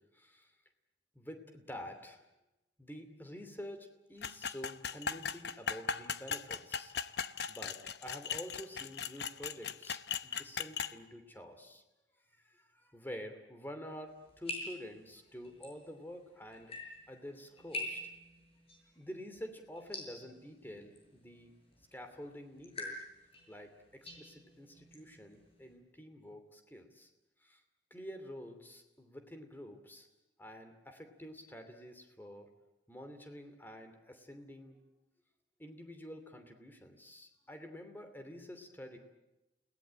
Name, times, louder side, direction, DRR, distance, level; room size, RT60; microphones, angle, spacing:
voice 1, 0.1-0.5 1.1-2.2 2.8-6.9 7.5-11.8 12.4-16.7 17.1-18.0 18.9-21.5 21.9-23.0 23.5-27.1 27.4-27.6 27.9-30.1 30.4-32.5 32.9-34.8 35.6-39.0, equal, 10° left, 6 dB, 2.7 m, -48 dB
sound 1, 4.2-10.9, left 6 dB, 65° left, 0.9 m, -38 dB
sound 2, 14.1-25.7, left 1 dB, 35° left, 7.1 m, -47 dB
29.5 x 18.5 x 8.8 m, 0.97 s
head